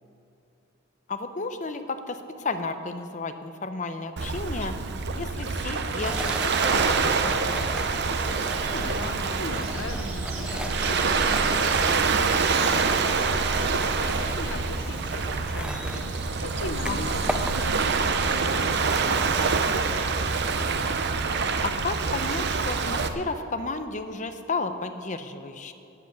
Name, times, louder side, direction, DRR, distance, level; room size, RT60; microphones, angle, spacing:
voice 1, 1.1-4.7 5.1-7.9 16.8-17.5 21.6-25.7, left 3 dB, 35° left, 9 dB, 0.7 m, -33 dB
Waves surf, 4.2-23.1, right 4 dB, 55° right, 0.7 m, -26 dB
sound 1, 6.0-17.6, right 1 dB, 5° right, 0.4 m, -38 dB
sound 2, 7.5-20.7, right 2 dB, 85° right, 2.2 m, -42 dB
voice 2, 8.7-20.3, left 2 dB, 65° left, 8 dB, 0.9 m, -40 dB
12.0 x 8.0 x 8.2 m, 2.8 s
head